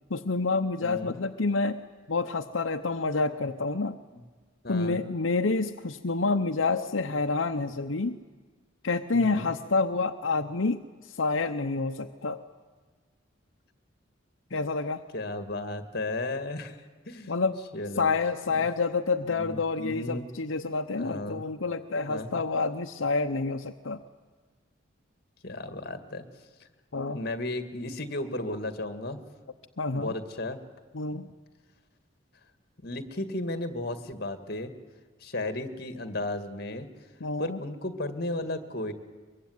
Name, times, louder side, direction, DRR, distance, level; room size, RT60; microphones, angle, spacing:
voice 1, 0.1-1.8 2.1-3.9 4.7-8.2 8.8-12.4 14.5-15.0 17.3-17.6 18.0-24.0 26.9-27.2 29.8-30.1 30.9-31.3 37.2-37.6, left 3 dB, 85° left, 6 dB, 0.9 m, -28 dB
voice 2, 0.8-1.2 4.1-4.2 4.6-5.0 9.1-9.5 15.1-16.8 17.1-17.3 17.7-18.1 18.5-18.6 19.3-20.3 21.0-21.4 22.1-22.4 25.4-26.2 26.6-26.7 27.1-29.2 29.9-30.6 32.8-34.7 35.2-36.9 37.4-38.9, left 2 dB, 55° left, 9 dB, 2.1 m, -34 dB
23.5 x 23.0 x 9.5 m, 1.4 s
head